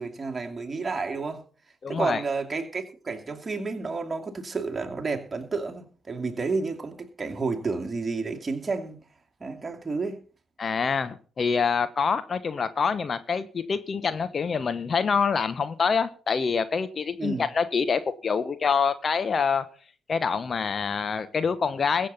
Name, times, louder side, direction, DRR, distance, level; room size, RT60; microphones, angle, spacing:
voice 1, 0.0-1.4 1.9-9.0 9.4-10.2 17.2-17.5, right 4 dB, 30° right, 2.6 m, -31 dB
voice 2, 1.8-2.2 10.6-19.6 20.1-22.1, left 5 dB, 40° left, 1.0 m, -26 dB
22.0 x 7.6 x 4.1 m
figure-of-eight pair, 40°, 0 cm